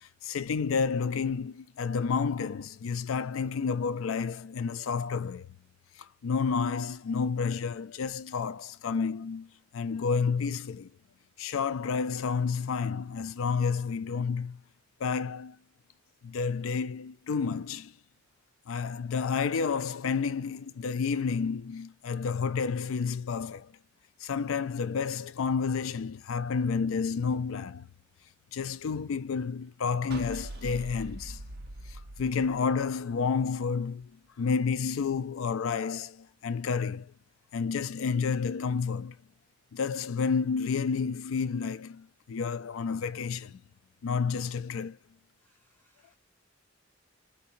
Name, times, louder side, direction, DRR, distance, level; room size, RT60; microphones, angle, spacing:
voice 1, 0.0-5.5 6.0-10.9 11.4-14.6 15.0-15.6 16.2-17.9 18.7-23.7 24.2-27.9 28.5-31.4 31.9-37.1 37.5-39.2 39.7-43.6 44.0-45.0, left 5 dB, 75° left, 0.4 m, -30 dB
sound 1, 30.1-33.3, right 1 dB, 50° right, 0.6 m, -42 dB
voice 2, 45.4-46.2, equal, 10° left, 1.2 m, -70 dB
3.9 x 2.6 x 2.7 m
head